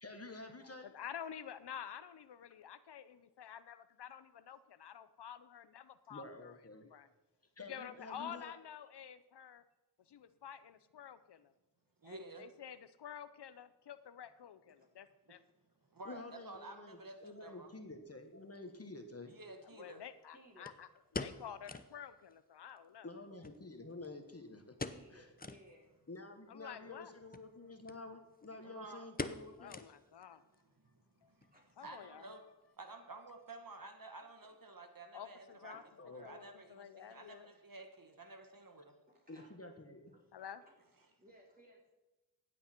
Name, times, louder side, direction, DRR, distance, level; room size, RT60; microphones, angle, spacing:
voice 1, 0.0-0.9 6.1-6.9 7.6-8.5 16.0-19.3 23.0-24.7 25.1-25.2 26.1-29.8 36.0-36.4 39.3-40.2, left 2 dB, 35° left, 6 dB, 1.4 m, -50 dB
voice 2, 0.8-6.6 6.8-7.1 7.6-9.6 10.1-11.5 12.0-15.4 19.6-23.1 26.5-27.1 29.6-30.4 31.2-31.3 31.8-32.3 35.1-35.8 36.2-37.5 40.3-40.6, left 9 dB, 85° left, 13 dB, 0.7 m, -50 dB
voice 3, 12.0-12.5 15.9-17.7 19.2-20.0 28.6-29.1 30.8-31.5 31.8-32.4 32.8-35.7 36.0-38.9, right 2 dB, 55° right, 5 dB, 1.7 m, -52 dB
sound 1, 18.6-18.7 20.7-22.0 22.3-22.4 22.7-22.8 23.4-24.3 24.7-25.1 25.4-25.7 26.2-26.3 27.2-27.5 27.9-28.0 28.3-28.6 29.2-30.2 30.5-30.6 31.2-31.6 31.8-31.9, left 3 dB, 20° left, 0.8 m, -44 dB
voice 4, 20.3-20.7 24.9-25.9 31.5-31.7 34.4-34.5 35.5-36.0 37.1-37.2 38.2-38.3 39.1-39.7 40.1-40.3 40.6-40.7 41.2-41.9, equal, 20° right, -2 dB, 4.6 m, -62 dB
15.0 x 8.4 x 4.4 m, 1.1 s
cardioid pair, 50°, 39 cm